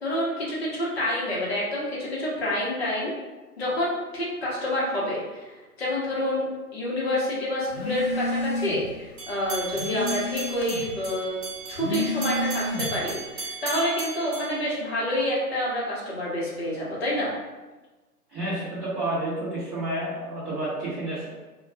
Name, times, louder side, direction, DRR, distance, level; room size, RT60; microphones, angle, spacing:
voice 1, 0.0-3.1 3.6-6.5 6.7-11.4 11.7-17.3, left 1 dB, 40° left, -5 dB, 0.8 m, -28 dB
Telephone, 7.7-9.0 9.3-11.0 11.6-13.1, left 2 dB, 70° left, 0.7 m, -30 dB
sound 1, 9.2-15.4, right 3 dB, 45° right, 0.9 m, -36 dB
voice 2, 18.3-21.3, right 1 dB, 10° right, -14 dB, 0.7 m, -30 dB
2.3 x 2.2 x 3.4 m, 1.2 s
figure-of-eight pair, 130°, 47 cm